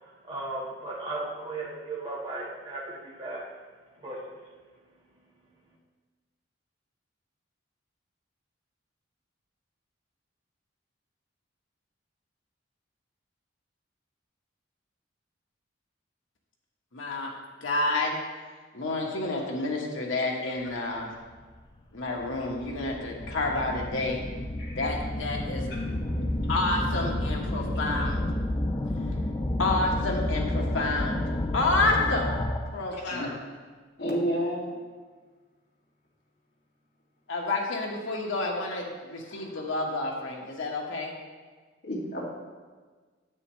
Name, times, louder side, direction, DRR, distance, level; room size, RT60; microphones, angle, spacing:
voice 1, 0.2-3.4 4.0-4.2, right 2 dB, 25° right, -6 dB, 1.5 m, -36 dB
voice 2, 16.9-18.2 18.7-21.1 21.9-24.2 24.7-25.7 26.5-28.3 29.6-31.2 31.5-32.3 32.7-33.4 37.3-41.1, left 2 dB, 85° left, 0 dB, 1.4 m, -29 dB
sound 1, 21.4-21.5 22.2-32.8, left 1 dB, 20° left, 0.5 m, -30 dB
voice 3, 32.9-33.3 34.0-34.7 39.3-39.5 41.8-42.2, equal, 60° left, -5 dB, 2.3 m, -31 dB
9.6 x 8.1 x 3.2 m, 1.4 s
head